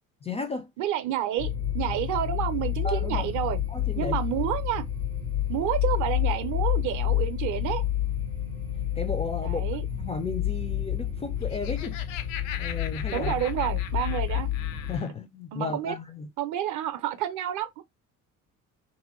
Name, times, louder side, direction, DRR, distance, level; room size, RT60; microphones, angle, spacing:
voice 1, 0.2-0.7 2.8-3.3 3.7-4.2 8.9-9.6 9.9-12.0 12.6-13.4 14.9-16.3, left 4 dB, 15° left, 0.4 m, -34 dB
voice 2, 0.8-1.5 1.7-3.6 4.0-4.9 5.5-7.8 9.4-9.8 13.1-14.5 15.5-15.9 16.4-17.8, right 11 dB, 45° right, 0.6 m, -29 dB
sound 1, 1.4-15.0, left 11 dB, 85° left, 1.4 m, -29 dB
Laughter, 11.3-15.1, left 10 dB, 65° left, 0.6 m, -40 dB
2.8 x 2.7 x 2.4 m
figure-of-eight pair, 50°, 42 cm